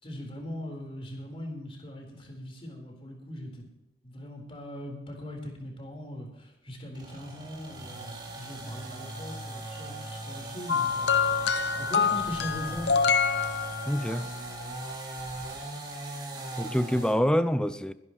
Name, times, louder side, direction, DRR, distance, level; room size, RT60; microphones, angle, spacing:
voice 1, 0.0-3.6 4.0-11.1 11.5-13.0, equal, 35° left, 4.0 m, -40 dB
sound 1, 6.9-17.2, right 2 dB, 25° right, 4.1 m, -39 dB
sound 2, 10.7-14.2 15.3-15.5, left 6 dB, 80° left, 0.9 m, -26 dB
voice 2, 13.9-14.3 16.6-17.9, equal, 5° left, 0.5 m, -26 dB
22.0 x 11.5 x 3.1 m
head